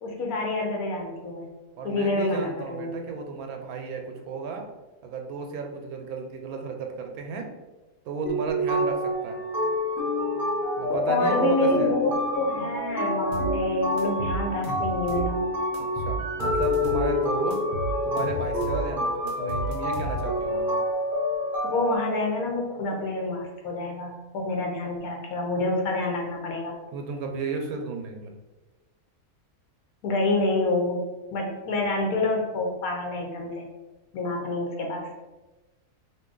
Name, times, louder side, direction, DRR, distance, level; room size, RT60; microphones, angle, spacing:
voice 1, 0.0-1.5 1.8-3.0 10.9-15.5 21.6-26.7 30.0-31.0 31.3-33.6 34.1-35.1, left 2 dB, 85° left, 0 dB, 1.1 m, -27 dB
voice 2, 1.8-4.7 5.0-7.5 8.0-9.4 10.8-11.9 15.8-17.6 18.0-20.8 26.9-28.3, right 4 dB, 90° right, 3 dB, 1.1 m, -33 dB
sound 1, 8.2-22.0, left 1 dB, ahead, 0.9 m, -27 dB
sound 2, 13.3-13.6 14.0-15.3 15.7-17.1 17.5-18.9 19.3-20.4, right 3 dB, 65° right, 0.9 m, -32 dB
2.6 x 2.6 x 3.7 m, 1.1 s
omnidirectional pair, 1.5 m